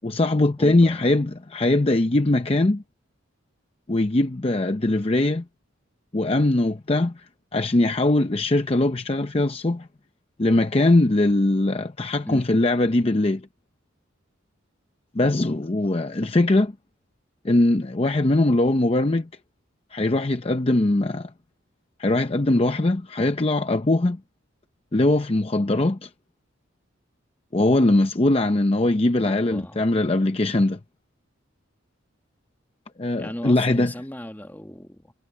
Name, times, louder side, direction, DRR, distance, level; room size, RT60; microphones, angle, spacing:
voice 1, 0.0-2.8 3.9-5.4 6.1-7.3 7.5-9.9 10.4-13.4 15.1-16.7 17.4-19.3 19.9-21.3 22.0-24.2 24.9-26.1 27.5-30.8 33.0-33.9, left 2 dB, 30° left, 0.6 m, -21 dB
voice 2, 0.6-1.2 12.2-12.4 29.2-29.8 33.2-35.1, left 1 dB, 10° left, 1.3 m, -37 dB
head